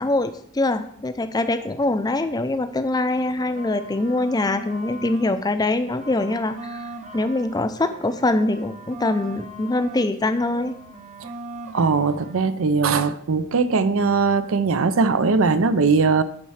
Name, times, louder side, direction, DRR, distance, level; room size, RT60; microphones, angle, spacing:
voice 1, 0.0-10.7, left 2 dB, 20° left, 0.5 m, -23 dB
sound 1, 3.1-5.4 5.7-10.1 10.3-12.4, right 1 dB, 35° right, 0.8 m, -39 dB
voice 2, 11.7-16.2, right 4 dB, 70° right, 0.5 m, -20 dB
8.7 x 4.3 x 6.4 m
head